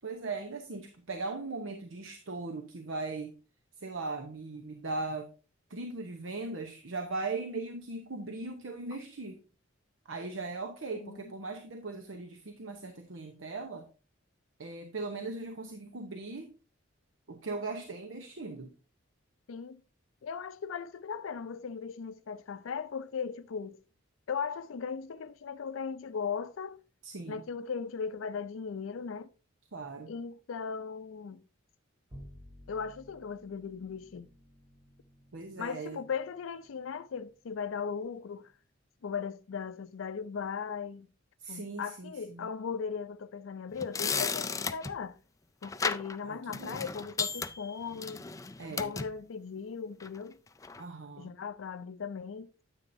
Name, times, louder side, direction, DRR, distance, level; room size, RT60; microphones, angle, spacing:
voice 1, 0.0-3.4 3.8-5.3 5.7-9.4 10.1-13.9 14.6-16.5 17.3-18.7 27.0-27.4 29.7-30.1 35.3-36.0 41.4-42.5 46.2-46.8 48.6-48.9 50.8-51.3, right 3 dB, 75° right, 0.9 m, -39 dB
voice 2, 10.9-11.3 19.5-19.8 20.2-23.8 24.3-26.8 27.3-29.3 30.1-31.4 32.7-34.3 35.6-38.5 39.0-41.1 41.5-45.2 45.6-48.3 48.8-50.4 51.2-52.5, left 6 dB, 75° left, 0.4 m, -38 dB
Bowed string instrument, 32.1-38.6, equal, 15° right, 1.1 m, -56 dB
sound 1, 43.7-45.0 45.6-46.2 46.5-49.1 50.0-50.2 50.6-50.8, left 5 dB, 15° left, 0.4 m, -34 dB
9.7 x 8.4 x 2.7 m
head